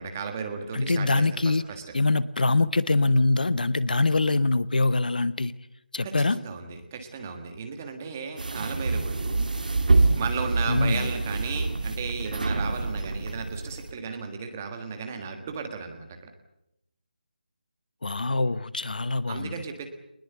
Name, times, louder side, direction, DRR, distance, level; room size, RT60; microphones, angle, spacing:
voice 1, 0.0-1.8 6.0-9.5 10.2-16.3 19.3-19.9, right 5 dB, 15° right, 5 dB, 1.6 m, -35 dB
voice 2, 0.7-1.6 1.9-5.5 5.9-6.4 10.7-11.1 18.0-19.6, left 3 dB, 55° left, 16 dB, 1.0 m, -24 dB
sound 1, 8.4-13.9, right 3 dB, 55° right, 2.2 m, -26 dB
22.5 x 20.5 x 8.1 m, 0.84 s
figure-of-eight pair, 180°, 5 cm